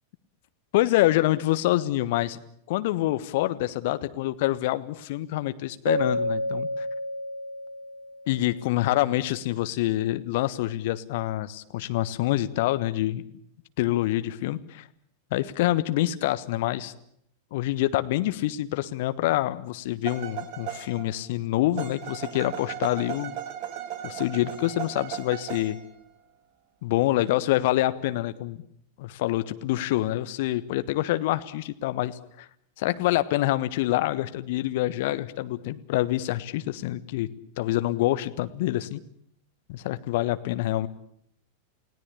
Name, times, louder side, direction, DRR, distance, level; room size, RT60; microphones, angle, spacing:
voice 1, 0.7-2.4 2.7-6.9 8.3-13.2 13.8-14.8 15.3-16.9 17.5-23.3 24.0-25.8 26.8-28.6 29.0-32.5 32.8-37.3 37.6-39.0 39.7-40.9, left 15 dB, 50° left, 12 dB, 1.3 m, -26 dB
Keyboard (musical), 5.9-8.3, equal, 80° right, 2.6 m, -30 dB
sound 1, 20.0-21.2 21.8-25.9, right 10 dB, 40° right, 2.2 m, -36 dB
29.5 x 17.5 x 8.4 m, 0.71 s
figure-of-eight pair, 90°, 0 cm